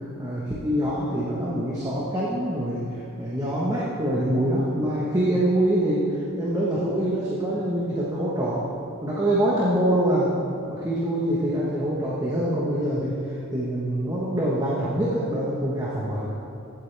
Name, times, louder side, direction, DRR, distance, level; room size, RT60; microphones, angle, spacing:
voice 1, 0.2-8.6 9.0-10.3 10.7-16.3, right 1 dB, 15° right, -7 dB, 1.2 m, -25 dB
15.5 x 8.6 x 3.4 m, 2.7 s
head